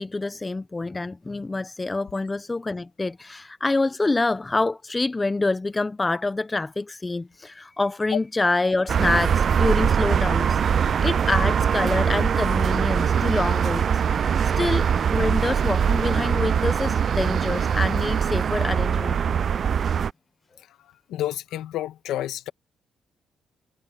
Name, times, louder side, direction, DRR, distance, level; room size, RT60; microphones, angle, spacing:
voice 1, 0.0-14.0 14.4-19.2, left 3 dB, 20° left, 0.8 m, -26 dB
sound 1, 8.9-20.1, right 7 dB, 55° right, 0.3 m, -22 dB
voice 2, 21.1-22.5, left 13 dB, 85° left, 1.4 m, -29 dB
cardioid pair, 90°, 0 cm